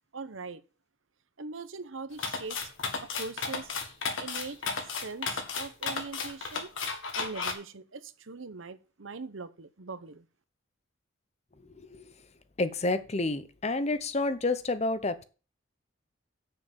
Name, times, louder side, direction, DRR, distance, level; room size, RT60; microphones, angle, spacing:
voice 1, 0.1-0.6 1.4-2.7 3.0-3.7 4.2-6.7 7.1-10.2, right 4 dB, 80° right, 0.9 m, -41 dB
sound 1, 2.2-7.5, left 4 dB, 80° left, 2.0 m, -33 dB
voice 2, 11.6-12.1 12.6-15.2, left 2 dB, 35° left, 0.8 m, -30 dB
7.5 x 6.8 x 7.4 m
head